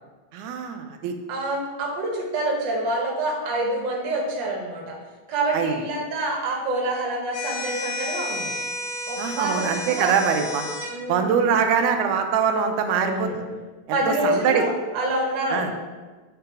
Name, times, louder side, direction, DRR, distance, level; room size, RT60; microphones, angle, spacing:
voice 1, 0.3-1.1 5.5-5.7 9.2-10.6 11.1-13.5 13.9-14.7 15.5-15.7, right 6 dB, 85° right, 5 dB, 2.0 m, -23 dB
voice 2, 1.3-5.0 5.3-8.6 9.1-10.1 10.9-11.4 12.9-13.4 13.9-15.8, right 1 dB, 55° right, -1 dB, 1.5 m, -27 dB
sound 1, 7.3-10.9, left 2 dB, 45° left, 0.7 m, -31 dB
8.0 x 3.7 x 4.6 m, 1.3 s
omnidirectional pair, 3.4 m